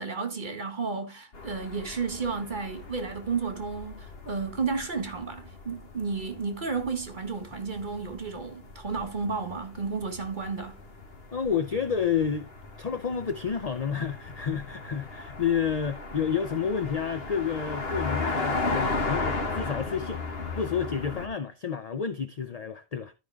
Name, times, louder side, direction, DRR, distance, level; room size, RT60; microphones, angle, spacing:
voice 1, 0.0-10.8, right 4 dB, 50° right, 1.8 m, -32 dB
sound 1, 1.3-21.3, left 3 dB, 70° left, 1.7 m, -36 dB
voice 2, 11.3-12.5 12.8-20.2 20.6-23.1, left 7 dB, 45° left, 0.7 m, -30 dB
13.0 x 5.2 x 3.5 m
omnidirectional pair, 1.0 m